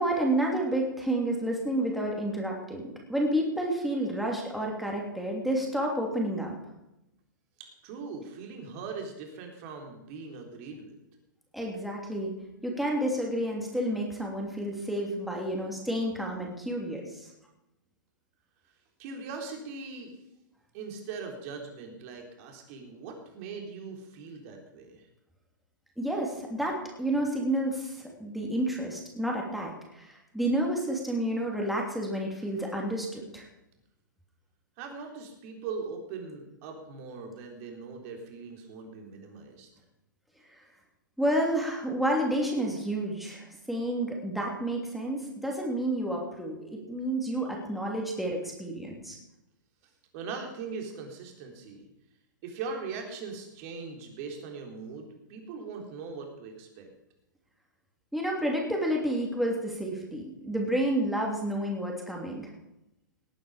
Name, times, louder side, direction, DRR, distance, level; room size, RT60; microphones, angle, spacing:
voice 1, 0.0-6.5 11.5-12.3 12.6-17.3 26.0-33.5 40.5-40.6 41.2-49.2 58.1-62.5, right 1 dB, ahead, -1 dB, 3.0 m, -30 dB
voice 2, 7.6-11.0 19.0-20.1 20.7-25.1 34.8-39.7 50.1-51.9 52.4-56.9, right 4 dB, 45° right, 3 dB, 3.8 m, -40 dB
19.0 x 9.3 x 5.1 m, 0.89 s
hypercardioid pair, 115°, 11 cm